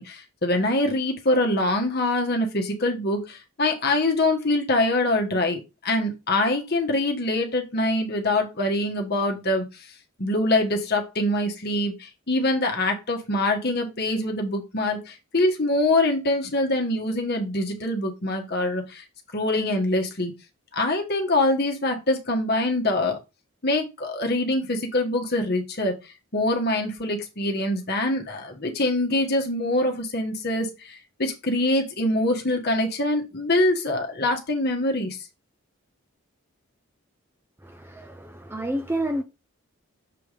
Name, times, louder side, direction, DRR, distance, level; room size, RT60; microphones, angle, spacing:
voice 1, 0.0-9.8 10.2-19.0 19.3-20.3 20.7-23.2 23.6-25.9 26.3-35.2, left 1 dB, 45° left, 1.2 m, -24 dB
voice 2, 37.6-39.2, right 1 dB, 10° right, 0.5 m, -29 dB
6.9 x 3.5 x 4.8 m
head